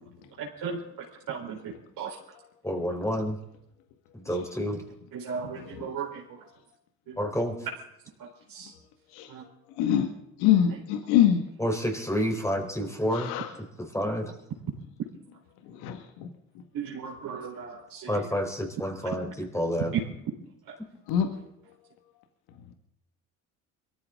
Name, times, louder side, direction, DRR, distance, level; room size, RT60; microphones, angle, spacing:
voice 1, 2.6-3.4 4.1-4.8 7.2-7.7 11.6-13.3 13.8-14.3 18.1-19.9, equal, 5° left, 3 dB, 4.0 m, -29 dB
voice 2, 5.2-6.1 16.7-17.8, right 6 dB, 60° right, -2 dB, 4.3 m, -34 dB
voice 3, 10.4-11.4 13.2-13.5 15.8-16.0 21.1-21.3, left 10 dB, 75° left, 6 dB, 1.9 m, -22 dB
22.5 x 14.5 x 3.8 m, 0.78 s
hypercardioid pair, 65°, 38 cm